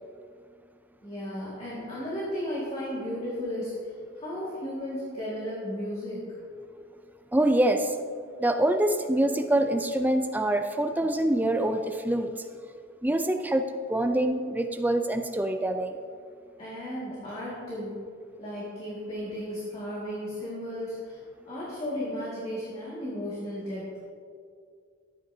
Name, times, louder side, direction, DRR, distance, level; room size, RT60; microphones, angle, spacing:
voice 1, 1.0-6.3 16.6-18.0 18.4-21.2 21.5-23.9, equal, 30° left, -8 dB, 2.0 m, -34 dB
voice 2, 7.3-8.0 8.4-12.3 13.0-13.6 13.9-16.0, right 1 dB, 10° right, 6 dB, 0.4 m, -25 dB
12.5 x 8.7 x 2.8 m, 2.2 s
head